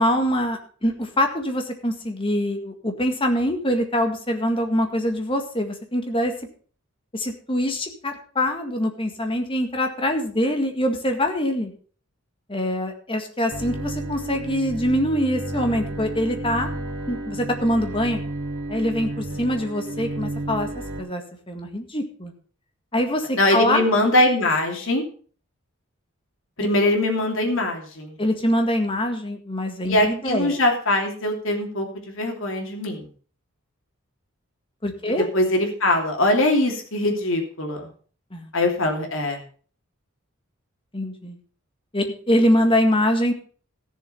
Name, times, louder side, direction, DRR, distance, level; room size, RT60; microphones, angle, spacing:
voice 1, 0.0-6.3 7.1-11.7 12.5-16.7 17.1-18.2 18.7-20.7 21.0-21.2 21.5-22.3 22.9-23.9 28.2-30.6 34.8-35.3 38.3-38.5 40.9-41.4 41.9-43.3, equal, 25° left, 5 dB, 1.7 m, -24 dB
Bowed string instrument, 13.5-21.0, right 1 dB, 65° right, 3.3 m, -32 dB
voice 2, 23.4-25.0 26.6-28.2 29.9-33.1 35.3-37.9 38.5-39.4, left 1 dB, 65° left, 2 dB, 2.9 m, -22 dB
15.0 x 7.1 x 5.4 m, 0.42 s
head